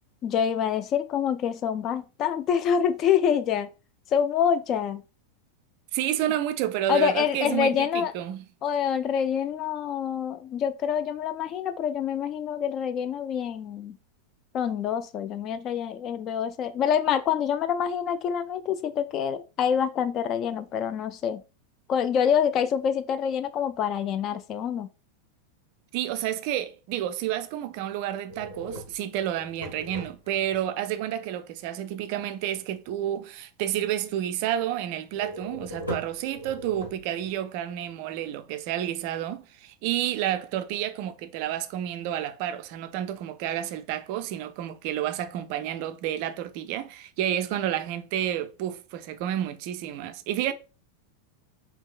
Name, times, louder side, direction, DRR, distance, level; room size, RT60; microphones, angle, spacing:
voice 1, 0.2-3.7 4.1-5.0 6.9-8.1 8.6-13.9 14.5-21.4 21.9-24.9, left 8 dB, 35° left, 0.3 m, -26 dB
voice 2, 5.9-8.4 25.9-50.5, right 11 dB, 45° right, 0.3 m, -30 dB
sound 1, 28.3-30.6 35.1-37.4, equal, 85° left, 1.2 m, -39 dB
3.5 x 2.8 x 2.5 m
figure-of-eight pair, 90°, 0 cm